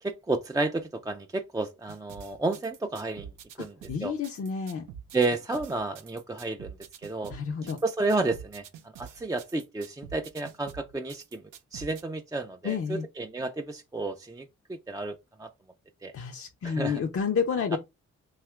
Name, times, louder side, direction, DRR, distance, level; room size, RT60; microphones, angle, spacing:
voice 1, 0.0-3.3 3.6-3.7 4.0-4.1 5.1-6.8 7.0-7.3 7.6-8.6 9.0-11.4 11.7-15.5 16.0-16.1 16.6-17.0 17.7-17.8, right 2 dB, 10° right, 0.4 m, -31 dB
sound 1, 1.9-12.0, right 8 dB, 75° right, 0.6 m, -46 dB
voice 2, 3.9-4.9 7.3-7.8 12.6-13.1 16.1-17.8, left 6 dB, 45° left, 0.6 m, -30 dB
2.7 x 2.4 x 3.2 m
supercardioid pair, 50°, 32 cm